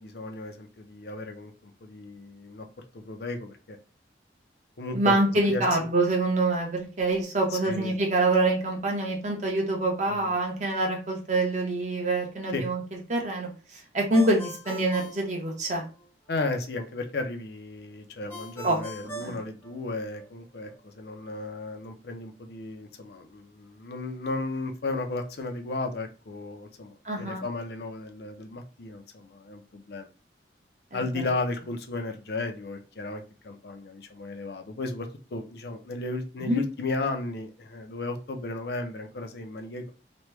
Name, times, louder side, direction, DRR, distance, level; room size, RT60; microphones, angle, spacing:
voice 1, 0.0-2.7 2.9-3.8 4.8-5.2 5.5-5.6 7.5-7.9 10.1-10.3 12.5-12.6 16.3-30.1 30.9-39.9, left 3 dB, 60° left, 5 dB, 0.5 m, -34 dB
voice 2, 4.9-12.8 13.1-13.5 13.9-15.8 18.6-18.8 19.2-19.4 27.0-27.4 30.9-31.2 36.4-36.6, right 2 dB, 40° right, 0 dB, 0.9 m, -25 dB
Ringtone, 14.1-16.1 18.3-20.3, right 2 dB, 10° left, 0.8 m, -41 dB
3.0 x 2.2 x 3.2 m, 0.35 s
head